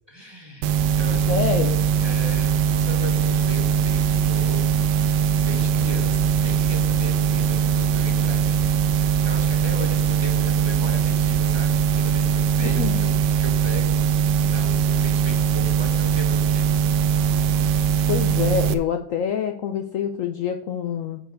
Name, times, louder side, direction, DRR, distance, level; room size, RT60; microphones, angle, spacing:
voice 1, 0.0-1.5 2.0-16.9, equal, 20° right, 2 dB, 0.9 m, -37 dB
sound 1, 0.6-18.7, right 7 dB, 75° right, 1.1 m, -21 dB
voice 2, 1.1-1.8 12.6-13.0 18.1-21.2, left 8 dB, 85° left, 6 dB, 0.7 m, -26 dB
7.7 x 4.6 x 6.5 m, 0.67 s
omnidirectional pair, 2.0 m